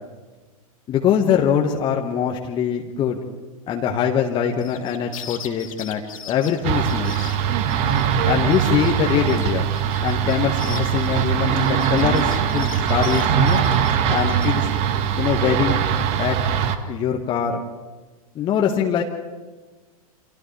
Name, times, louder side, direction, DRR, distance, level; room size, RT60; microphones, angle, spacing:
voice 1, 0.9-3.2 3.7-6.0 6.3-7.1 8.3-9.7 10.0-13.6 14.1-14.7 15.2-15.8 16.2-16.4 16.9-17.6 18.3-19.0, left 8 dB, 25° left, 1 dB, 1.6 m, -22 dB
sound 1, 4.5-8.2 8.5-8.9 9.3-14.6, left 8 dB, 65° left, 2.8 m, -39 dB
sound 2, 6.6-16.8, right 8 dB, 35° right, 1.5 m, -21 dB
30.0 x 26.0 x 3.4 m, 1.3 s
figure-of-eight pair, 100°, 19 cm